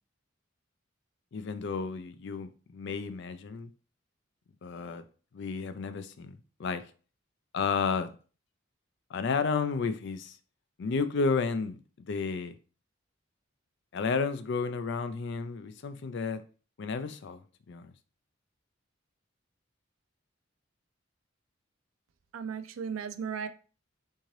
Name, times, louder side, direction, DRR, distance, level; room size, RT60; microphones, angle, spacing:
voice 1, 1.3-3.7 4.6-5.0 5.3-6.8 7.5-8.1 9.1-10.4 10.8-11.8 12.1-12.5 13.9-16.4 16.8-17.4 17.7-17.9, left 5 dB, 60° left, 0.4 m, -32 dB
voice 2, 22.3-23.5, right 6 dB, 85° right, 0.4 m, -35 dB
3.7 x 2.7 x 3.1 m
head